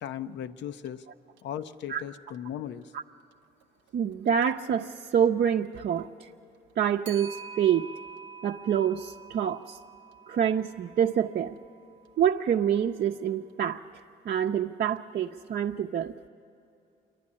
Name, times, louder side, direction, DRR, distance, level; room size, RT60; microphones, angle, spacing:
voice 1, 0.0-1.0 1.4-2.9, left 10 dB, 75° left, 12 dB, 0.7 m, -37 dB
Clock, 0.9-1.0 1.4-1.5 4.3-4.5 7.1-11.3, right 6 dB, 85° right, 0.8 m, -46 dB
voice 2, 3.9-6.3 6.8-7.9 8.4-9.8 10.3-11.6 12.2-13.8 14.2-16.1, right 8 dB, 55° right, 2 dB, 0.6 m, -26 dB
27.0 x 11.5 x 9.8 m, 2.7 s
cardioid pair, 80°, 19 cm